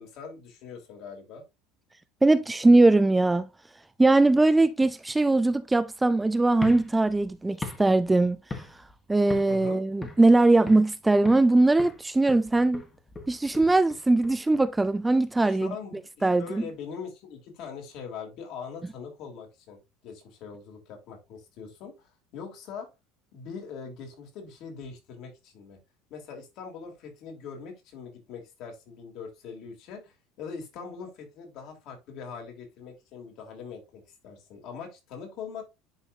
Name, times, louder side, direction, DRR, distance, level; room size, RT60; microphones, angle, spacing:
voice 1, 0.0-1.4 9.5-9.8 15.4-22.9 23.3-25.8 26.1-35.6, left 6 dB, 60° left, 3.1 m, -42 dB
voice 2, 2.2-3.5 4.0-8.4 9.1-12.8 13.3-15.7 16.2-16.6, right 2 dB, 10° right, 0.4 m, -21 dB
sound 1, 6.5-9.0 9.3-9.6 10.0-10.9 11.2-11.5 11.8-14.9, left 3 dB, 20° left, 1.4 m, -40 dB
10.5 x 4.0 x 2.7 m
supercardioid pair, 115°, 0 cm